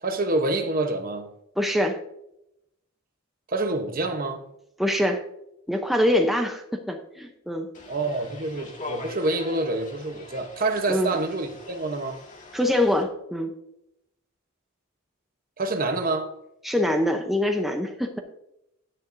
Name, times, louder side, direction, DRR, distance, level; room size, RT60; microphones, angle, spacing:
voice 1, 0.0-1.3 3.5-4.4 7.9-12.2 15.6-16.3, right 2 dB, 40° right, 0.9 m, -27 dB
voice 2, 1.6-2.0 4.8-5.2 5.7-7.7 10.9-11.1 12.5-13.5 16.6-18.2, left 1 dB, ahead, 0.6 m, -24 dB
sound 1, 7.7-13.0, left 2 dB, 35° left, 1.9 m, -42 dB
10.5 x 9.8 x 2.6 m
head